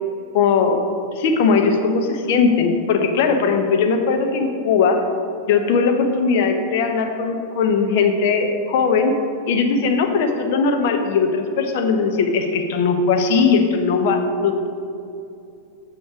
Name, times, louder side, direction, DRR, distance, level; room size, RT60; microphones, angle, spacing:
voice 1, 0.3-0.8 1.2-5.0 5.5-9.2 9.5-14.7, left 5 dB, 50° left, 5 dB, 0.9 m, -19 dB
8.6 x 6.4 x 5.0 m, 2.6 s
figure-of-eight pair, 90°, 0 cm